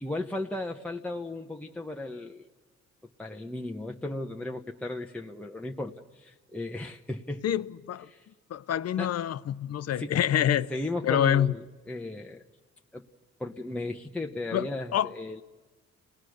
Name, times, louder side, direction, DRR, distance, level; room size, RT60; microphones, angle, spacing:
voice 1, 0.0-2.5 3.2-7.4 8.1-8.3 9.0-9.2 9.9-10.2 10.7-12.4 12.9-13.1 13.4-15.4, left 2 dB, 5° left, 0.9 m, -35 dB
voice 2, 7.4-8.1 8.5-10.7 11.0-11.5 14.5-15.1, left 10 dB, 55° left, 0.7 m, -26 dB
29.5 x 19.0 x 6.5 m
cardioid pair, 90°, 30 cm